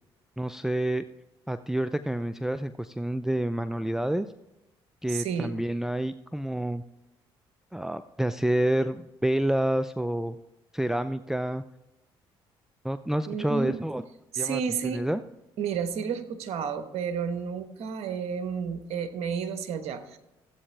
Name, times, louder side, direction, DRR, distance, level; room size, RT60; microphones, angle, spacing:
voice 1, 0.4-1.1 1.5-4.3 5.0-6.8 7.7-10.4 10.7-11.6 12.8-14.0 14.4-15.2, right 1 dB, 5° right, 12 dB, 0.5 m, -28 dB
voice 2, 5.1-5.6 13.3-13.7 14.3-15.0 15.6-20.2, right 6 dB, 65° right, 9 dB, 1.2 m, -31 dB
13.5 x 8.4 x 3.4 m, 0.95 s
supercardioid pair, 60°, 11 cm